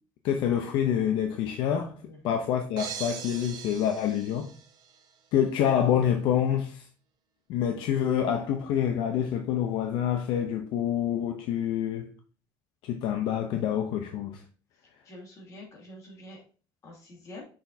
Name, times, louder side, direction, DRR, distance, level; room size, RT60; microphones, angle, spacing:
voice 1, 0.2-1.9 2.2-4.5 5.3-6.9 7.5-12.1 12.8-14.4, left 9 dB, 65° left, 0.7 m, -27 dB
voice 2, 2.0-2.4 15.0-16.4 16.8-17.4, left 2 dB, 40° left, 2.3 m, -46 dB
sound 1, 2.8-5.0, right 7 dB, 50° right, 1.1 m, -41 dB
6.5 x 5.9 x 2.7 m
cardioid pair, 175°, 9 cm